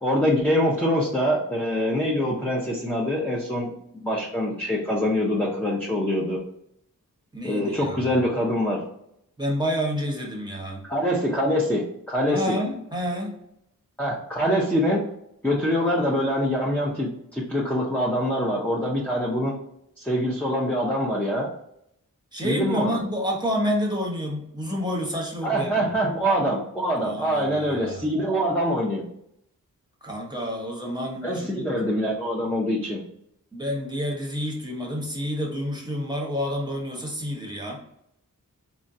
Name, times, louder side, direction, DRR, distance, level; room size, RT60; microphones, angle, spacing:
voice 1, 0.0-3.7 4.0-6.4 7.4-8.8 10.9-12.6 14.0-15.0 15.4-19.6 20.0-21.5 22.4-23.0 25.4-29.1 31.2-33.0, equal, 5° left, -4 dB, 0.6 m, -24 dB
voice 2, 7.3-8.2 9.4-10.8 12.3-13.3 22.3-25.9 27.0-28.1 30.0-31.7 33.5-37.8, equal, 10° right, -2 dB, 0.9 m, -29 dB
3.7 x 2.2 x 2.6 m, 0.75 s
wide cardioid pair, 55°, 34 cm